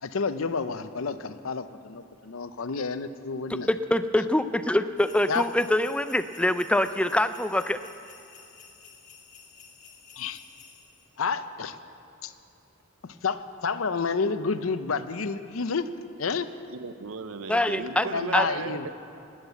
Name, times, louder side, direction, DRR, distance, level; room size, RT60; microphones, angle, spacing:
voice 1, 0.0-3.7 5.3-5.5 10.2-10.4 11.2-11.8 12.2-12.3 13.0-15.9 16.2-16.5 17.8-18.9, left 5 dB, 80° left, 12 dB, 0.7 m, -30 dB
voice 2, 3.5-7.8 17.5-18.5, left 1 dB, 5° left, 11 dB, 0.4 m, -25 dB
sound 1, 5.0-11.2, left 6 dB, 40° left, 1.8 m, -52 dB
voice 3, 16.7-18.9, right 4 dB, 75° right, 11 dB, 0.7 m, -36 dB
19.0 x 8.9 x 8.0 m, 2.6 s
head